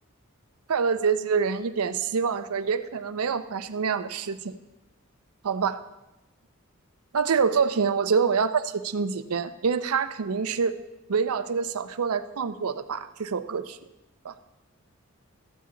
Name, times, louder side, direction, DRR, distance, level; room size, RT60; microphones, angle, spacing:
voice 1, 0.7-4.5 5.4-5.8 7.1-10.7 11.1-13.8 14.2-14.3, right 6 dB, 90° right, 11 dB, 0.6 m, -26 dB
14.0 x 8.2 x 3.8 m, 0.97 s
head